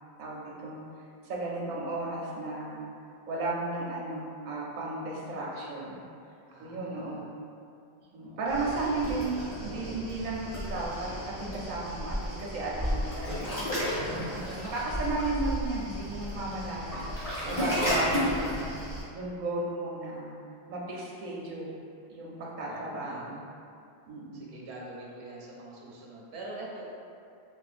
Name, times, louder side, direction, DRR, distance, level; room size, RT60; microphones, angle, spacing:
voice 1, 0.2-2.8 3.3-6.0 6.6-7.3 8.1-14.0 14.3-18.7 19.1-20.4 20.7-21.7 22.1-23.4 24.1-24.5, right 2 dB, 50° right, -5 dB, 0.6 m, -34 dB
voice 2, 6.5-7.3 8.2-8.9 9.2-9.3 9.5-9.8 22.6-23.4 24.3-26.9, right 2 dB, 80° right, -4 dB, 0.9 m, -45 dB
Waves surf, 8.5-19.0, equal, 20° left, 1.2 m, -33 dB
4.2 x 2.3 x 2.4 m, 2.5 s
omnidirectional pair, 1.1 m